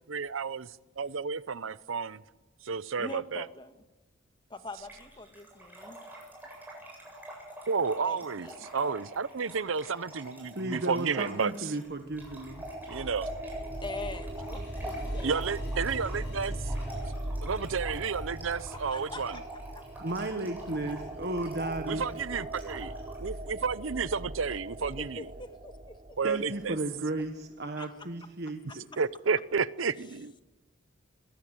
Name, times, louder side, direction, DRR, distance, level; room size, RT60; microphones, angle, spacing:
voice 1, 0.1-2.2 2.6-3.5 7.7-11.5 12.9-13.3 15.2-16.6 17.2-19.4 21.8-22.9 23.2-25.3 26.2-26.7 29.0-30.3, right 5 dB, 85° right, 0.8 m, -31 dB
voice 2, 3.0-3.7 4.5-6.0 8.0-8.7 13.8-15.4 18.9-19.4 19.7-19.8 25.0-26.2 27.8-27.9 28.7-28.8, left 2 dB, 25° left, 1.5 m, -43 dB
Trickle dribble / Fill (with liquid), 4.8-23.3, right 1 dB, 10° right, 8.0 m, -45 dB
voice 3, 10.5-12.6 20.0-22.1 26.2-28.9, right 2 dB, 55° right, 1.3 m, -34 dB
sound 1, 12.1-26.7, right 1 dB, 30° right, 1.0 m, -39 dB
Sink (filling or washing), 14.1-18.0, left 2 dB, 60° left, 6.5 m, -54 dB
23.0 x 16.5 x 9.0 m
head